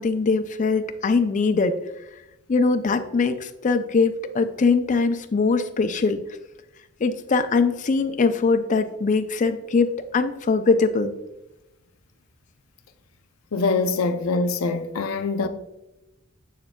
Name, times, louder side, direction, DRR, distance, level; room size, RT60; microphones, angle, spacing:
voice 1, 0.0-1.8 2.5-6.2 7.0-11.1, left 4 dB, 40° left, 0.4 m, -22 dB
voice 2, 13.5-15.5, left 3 dB, 85° left, 0.5 m, -24 dB
6.8 x 6.5 x 2.3 m
head